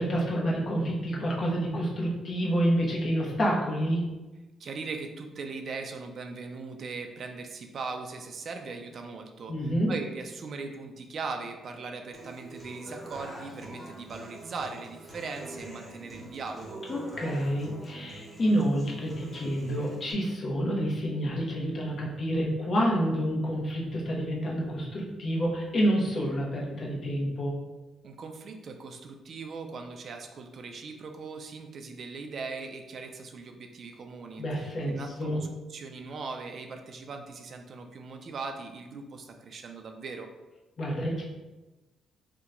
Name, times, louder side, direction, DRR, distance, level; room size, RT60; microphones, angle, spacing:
voice 1, 0.0-4.0 9.5-9.9 16.9-27.6 34.4-35.4 40.8-41.2, equal, 45° left, -2 dB, 0.8 m, -28 dB
voice 2, 4.6-16.8 28.0-40.3, right 4 dB, 55° right, 5 dB, 0.4 m, -39 dB
Human voice / Acoustic guitar, 12.1-20.1, right 1 dB, 5° right, 0.9 m, -44 dB
2.8 x 2.2 x 3.7 m, 1.1 s
cardioid pair, 90°, 0 cm